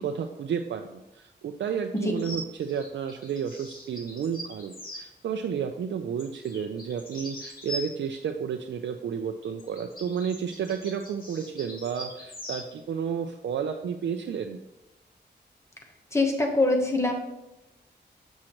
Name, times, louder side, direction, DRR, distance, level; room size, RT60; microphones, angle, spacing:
voice 1, 0.0-14.6, right 7 dB, 85° right, 5 dB, 0.4 m, -32 dB
sound 1, 2.2-5.0 6.2-8.2 9.4-12.7, equal, 55° left, 1.9 m, -41 dB
voice 2, 16.1-17.1, left 2 dB, 15° left, 2 dB, 1.0 m, -24 dB
7.2 x 6.3 x 3.0 m, 0.95 s
wide cardioid pair, 140°, 18 cm